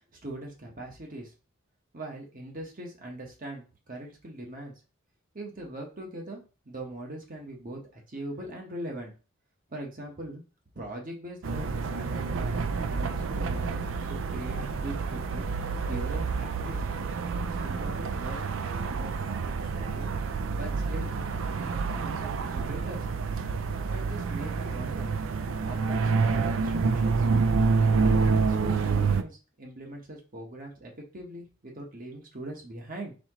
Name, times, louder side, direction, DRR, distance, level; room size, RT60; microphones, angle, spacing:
voice 1, 0.2-1.3 1.9-4.7 5.3-6.4 6.6-9.1 9.7-10.4 10.7-15.5 15.9-16.8 17.6-20.1 20.5-21.1 21.5-23.1 23.9-25.2 25.6-27.4 27.8-33.1, right 1 dB, 45° right, 0 dB, 1.1 m, -41 dB
sound 1, 11.4-29.2, right 4 dB, 70° right, 0.4 m, -28 dB
4.2 x 3.7 x 3.0 m, 0.33 s
head